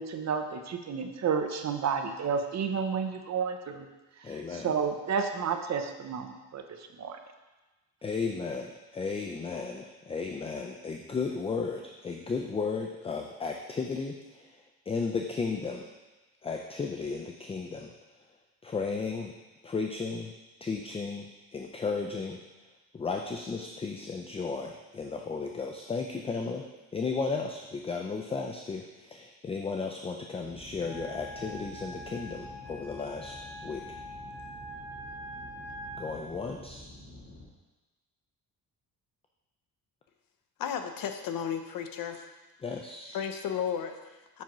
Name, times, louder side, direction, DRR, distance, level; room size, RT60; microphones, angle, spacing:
voice 1, 0.0-3.9 4.2-6.6 7.0-7.2, right 6 dB, 45° right, 6 dB, 0.6 m, -31 dB
voice 2, 4.2-4.7 8.0-14.6 14.9-15.9 16.4-17.9 18.6-19.3 19.6-20.3 20.6-22.4 22.9-26.6 26.9-33.4 33.6-33.8 36.0-36.8 42.6-43.2, left 4 dB, 15° left, 3 dB, 0.3 m, -34 dB
sound 1, 30.4-37.4, left 1 dB, 85° left, 2.4 m, -49 dB
Wind instrument woodwind instrument, 30.8-36.2, right 1 dB, 25° right, 2.1 m, -44 dB
voice 3, 40.6-42.3 43.1-44.4, left 8 dB, 60° left, 7 dB, 0.7 m, -34 dB
7.3 x 5.8 x 3.0 m, 1.2 s
cardioid pair, 115°, 38 cm